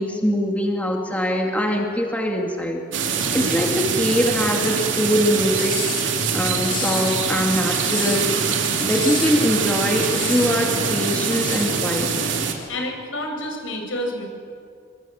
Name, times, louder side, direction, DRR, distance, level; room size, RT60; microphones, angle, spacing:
voice 1, 0.0-2.8 3.3-5.8 6.3-8.4 8.8-12.1, equal, 10° left, 1 dB, 2.3 m, -22 dB
sound 1, 2.9-12.5, right 5 dB, 70° right, 3.1 m, -24 dB
Cutlery silverware, 5.6-6.1 6.7-7.2 7.8-8.4 8.9-9.4 10.0-10.5 11.3-11.8, left 7 dB, 45° left, 5.4 m, -31 dB
voice 2, 12.7-14.2, left 1 dB, 75° left, 2 dB, 7.2 m, -29 dB
27.0 x 24.0 x 9.1 m, 2.3 s
head